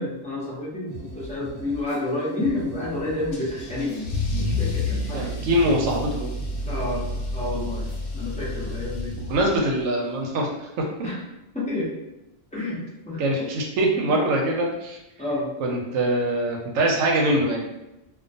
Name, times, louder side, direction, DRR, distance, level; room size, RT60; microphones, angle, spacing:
voice 1, 0.0-5.5 6.7-7.1 7.3-7.9 8.1-9.2 11.0-11.2 11.5-12.0 12.5-13.2 15.2-15.5, left 2 dB, 10° left, -8 dB, 0.5 m, -29 dB
sound 1, 0.9-8.9, right 1 dB, 40° right, 0.9 m, -41 dB
Car / Engine starting / Accelerating revving vroom, 3.3-9.8, left 2 dB, 85° left, 1.0 m, -30 dB
voice 2, 5.1-6.3 9.2-10.7 13.2-15.0 15.6-17.7, right 1 dB, 85° right, 0 dB, 1.0 m, -23 dB
2.3 x 2.2 x 2.6 m, 0.92 s
omnidirectional pair, 1.3 m